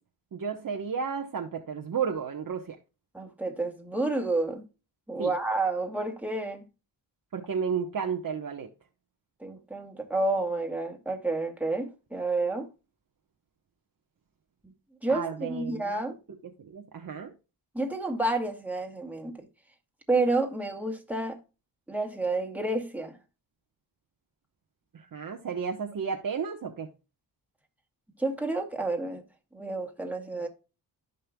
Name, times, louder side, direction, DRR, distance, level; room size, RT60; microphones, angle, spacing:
voice 1, 0.3-2.8 5.2-5.3 7.3-8.7 15.1-16.0 16.6-17.3 24.9-26.9, right 6 dB, 45° right, 1.2 m, -32 dB
voice 2, 3.1-4.6 5.1-6.6 9.4-12.7 15.0-16.2 17.7-19.4 20.1-21.4 21.9-23.2 28.2-29.2 29.5-30.5, right 2 dB, 5° right, 2.1 m, -30 dB
15.0 x 5.5 x 2.3 m
cardioid pair, 95°, 44 cm